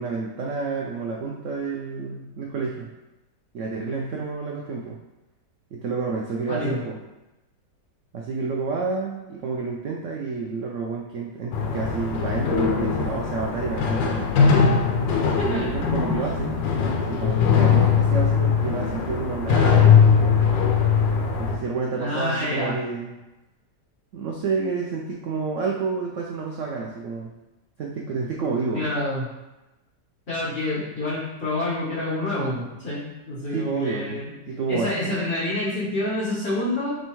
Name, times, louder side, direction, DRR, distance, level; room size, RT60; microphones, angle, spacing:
voice 1, 0.0-2.9 3.5-5.0 5.7-7.0 8.1-14.3 15.4-16.7 16.9-20.5 21.4-23.1 24.1-27.3 27.8-28.8 33.5-34.9, right 4 dB, 90° right, -1 dB, 0.6 m, -29 dB
voice 2, 6.5-6.8 15.4-15.7 22.0-22.8 28.7-29.3 30.3-34.3 34.7-37.0, left 1 dB, 45° left, -11 dB, 1.8 m, -27 dB
sound 1, 11.5-21.6, left 6 dB, 90° left, 1.3 m, -20 dB
6.8 x 2.3 x 3.0 m, 1.0 s
omnidirectional pair, 1.9 m